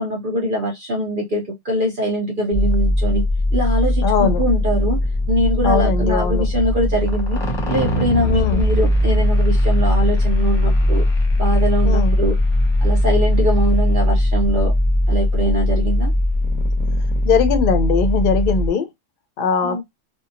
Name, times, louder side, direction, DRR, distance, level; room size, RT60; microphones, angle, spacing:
voice 1, 0.0-3.2 3.5-5.0 5.3-7.4 7.7-11.0 11.4-12.4 12.8-14.7 15.1-16.1 19.6-19.8, equal, 55° right, 0.7 m, -22 dB
sound 1, 2.5-18.7, left 1 dB, 25° left, 0.8 m, -19 dB
voice 2, 4.0-4.4 5.6-6.5 8.3-8.6 11.9-12.1 17.2-18.9 19.4-19.8, left 5 dB, 55° left, 0.6 m, -20 dB
2.7 x 2.2 x 2.4 m
omnidirectional pair, 1.2 m